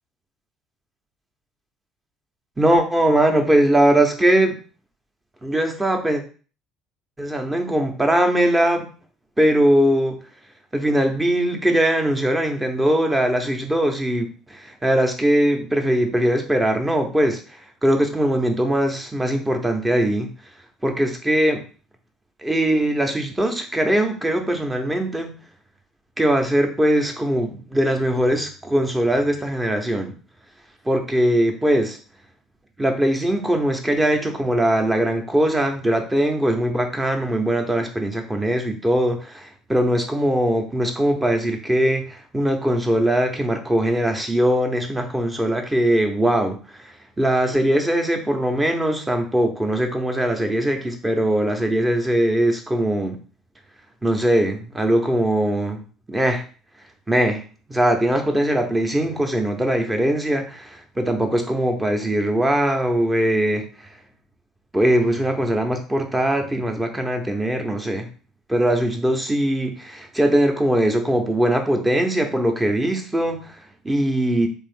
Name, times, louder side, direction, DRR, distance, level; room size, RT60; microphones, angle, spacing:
voice 1, 2.6-4.6 5.4-6.2 7.2-8.9 9.4-10.2 10.7-20.3 20.8-21.6 22.4-25.3 26.2-30.1 30.8-32.0 32.8-53.2 54.0-55.8 56.1-56.4 57.1-57.4 57.7-63.6 64.7-68.1 68.5-73.6 73.8-74.5, right 1 dB, 15° right, 4 dB, 0.9 m, -21 dB
3.5 x 2.6 x 3.6 m, 0.38 s
hypercardioid pair, 60°, 0 cm